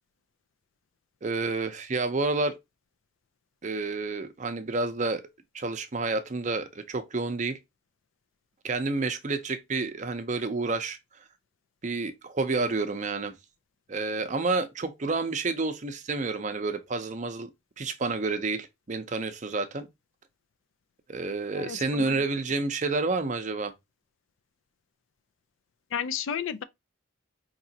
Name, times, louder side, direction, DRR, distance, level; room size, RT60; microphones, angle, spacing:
voice 1, 1.2-2.6 3.6-5.2 5.5-7.6 8.6-11.0 11.8-13.3 13.9-17.5 17.8-19.9 21.1-23.7, right 3 dB, 35° right, 0.5 m, -29 dB
voice 2, 21.5-22.2 25.9-26.6, left 8 dB, 75° left, 0.4 m, -32 dB
4.8 x 2.9 x 2.7 m
head